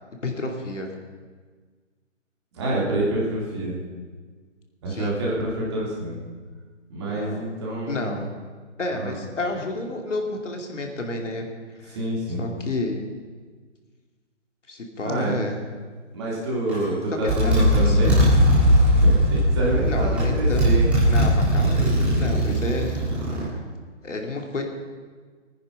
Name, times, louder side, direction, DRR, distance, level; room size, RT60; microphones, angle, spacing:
voice 1, 0.2-0.9 4.9-5.1 7.1-7.4 7.9-8.3 8.8-11.5 11.8-12.0 12.4-13.0 14.7-15.6 17.2-18.2 19.8-20.6 21.1-23.0 24.0-24.6, left 2 dB, 75° left, 2 dB, 2.9 m, -30 dB
voice 2, 2.5-3.8 4.8-6.2 6.9-8.2 8.9-9.2 11.9-12.4 15.0-15.4 16.1-18.1 18.9-20.9, right 1 dB, 20° right, -5 dB, 3.2 m, -27 dB
Motorcycle, 16.7-16.9 17.3-23.4, equal, 5° right, 1.8 m, -19 dB
20.0 x 9.8 x 5.5 m, 1.5 s
hypercardioid pair, 170°, 37 cm